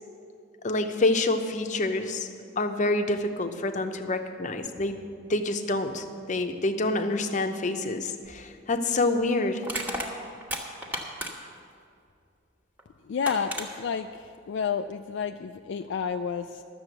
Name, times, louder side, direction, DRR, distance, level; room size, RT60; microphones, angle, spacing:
voice 1, 0.6-2.3 2.6-5.0 5.3-9.6, left 2 dB, 40° left, 7 dB, 0.7 m, -27 dB
Crushing, 8.3-8.4 9.6-11.6 12.8-12.9 13.2-13.7, equal, 10° right, 1.3 m, -33 dB
voice 2, 13.1-16.6, left 6 dB, 60° left, 6 dB, 0.3 m, -30 dB
12.5 x 7.0 x 8.0 m, 2.4 s
head